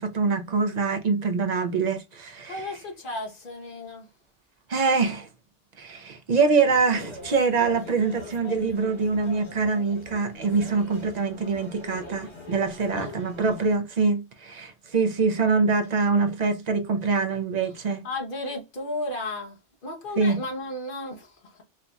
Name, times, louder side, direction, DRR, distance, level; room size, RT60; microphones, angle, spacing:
voice 1, 0.0-2.8 4.7-5.3 5.8-18.0 20.2-20.4, right 4 dB, 45° right, 0.6 m, -24 dB
voice 2, 2.4-4.1 12.9-13.2 18.0-19.6 19.8-21.6, left 2 dB, 45° left, 1.1 m, -34 dB
sound 1, 6.6-13.8, left 2 dB, 25° left, 1.1 m, -43 dB
4.3 x 2.6 x 2.2 m
omnidirectional pair, 1.3 m